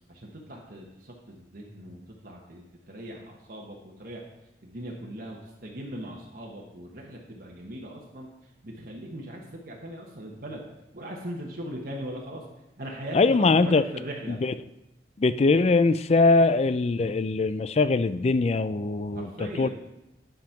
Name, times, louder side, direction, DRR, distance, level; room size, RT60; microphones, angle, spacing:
voice 1, 0.1-4.2 4.6-8.3 8.6-10.7 10.9-12.4 12.8-14.4 19.1-19.7, right 1 dB, 55° right, -2 dB, 1.2 m, -39 dB
voice 2, 13.1-13.8 14.4-14.5 15.2-19.3 19.6-19.7, left 3 dB, 35° left, 14 dB, 0.3 m, -21 dB
10.5 x 5.2 x 5.7 m, 0.90 s
head